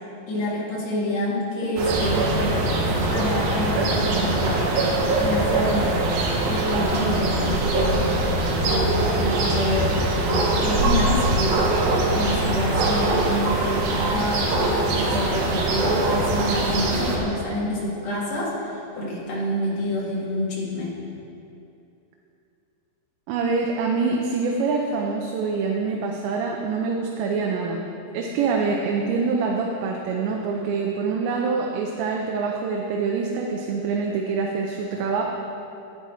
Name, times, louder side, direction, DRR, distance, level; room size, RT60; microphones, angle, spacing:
voice 1, 0.3-2.7 3.1-4.7 5.2-6.0 6.5-8.1 8.6-11.7 12.1-20.9, left 1 dB, 50° left, -5 dB, 2.5 m, -27 dB
sound 1, 1.8-17.2, right 2 dB, 65° right, 2.6 m, -22 dB
voice 2, 23.3-27.8 28.1-35.2, right 4 dB, 85° right, 0 dB, 3.0 m, -25 dB
10.5 x 10.5 x 4.3 m, 2.7 s
omnidirectional pair, 5.0 m